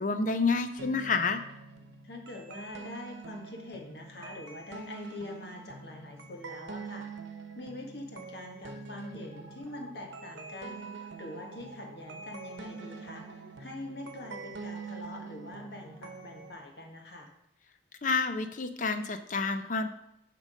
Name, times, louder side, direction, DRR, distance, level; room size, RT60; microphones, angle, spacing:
voice 1, 0.0-1.4 18.0-19.9, left 4 dB, 45° left, 8 dB, 0.6 m, -29 dB
sound 1, 0.8-16.5, right 4 dB, 90° right, 1.0 m, -45 dB
voice 2, 2.0-17.3, left 2 dB, 65° left, 2 dB, 1.6 m, -44 dB
10.5 x 3.8 x 6.3 m, 0.81 s
head